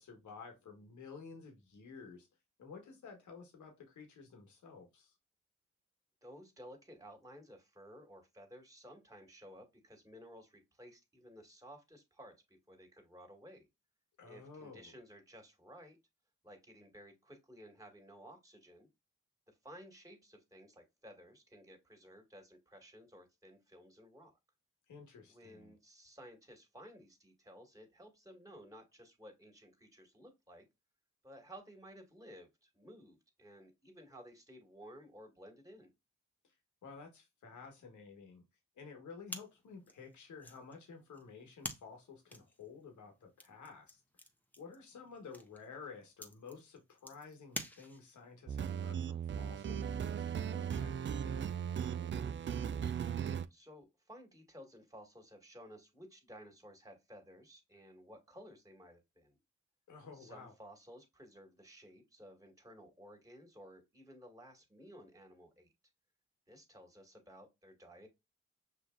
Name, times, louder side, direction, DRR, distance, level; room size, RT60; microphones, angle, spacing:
voice 1, 0.0-2.3 2.6-5.1 14.2-15.0 24.9-25.7 36.8-38.4 38.8-44.0 44.6-52.1 59.9-60.5, left 5 dB, 75° left, 1.4 m, -52 dB
voice 2, 6.2-13.7 14.2-16.0 16.4-18.9 19.5-24.3 25.3-30.7 31.2-35.9 53.0-59.4 60.1-65.7 66.5-68.1, equal, 10° right, 1.8 m, -56 dB
sound 1, 39.3-48.3, left 1 dB, 5° left, 0.9 m, -50 dB
sound 2, 48.5-53.5, right 8 dB, 40° right, 0.4 m, -37 dB
6.1 x 2.6 x 2.4 m
supercardioid pair, 45°, 30 cm